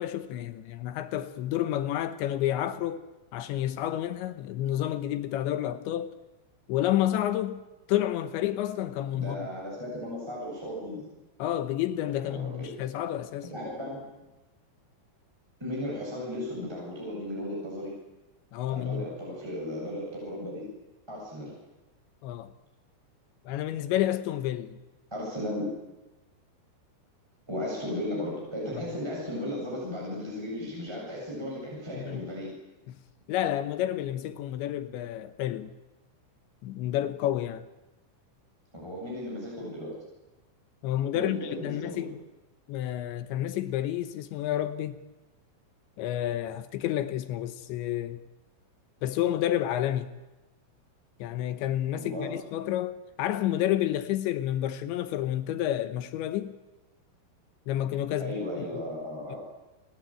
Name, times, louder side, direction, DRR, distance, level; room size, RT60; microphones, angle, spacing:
voice 1, 0.0-3.1 3.3-6.2 6.7-7.6 7.9-9.5 11.4-13.5 18.5-19.1 22.2-22.5 23.5-24.8 32.0-32.2 32.9-33.0 33.3-35.7 36.6-37.6 40.8-42.2 42.7-45.0 46.0-48.2 49.0-50.1 51.2-56.5 57.7-58.7 59.3-59.4, left 12 dB, 75° left, 3.2 m, -30 dB
voice 2, 9.1-11.0 12.2-12.7 13.5-14.0 15.6-17.9 18.7-20.6 21.1-21.5 25.1-25.7 27.5-32.5 38.7-39.9 41.1-42.1 51.9-52.3 58.2-59.4, left 1 dB, 5° right, 7.5 m, -35 dB
29.5 x 21.5 x 9.1 m
omnidirectional pair, 5.6 m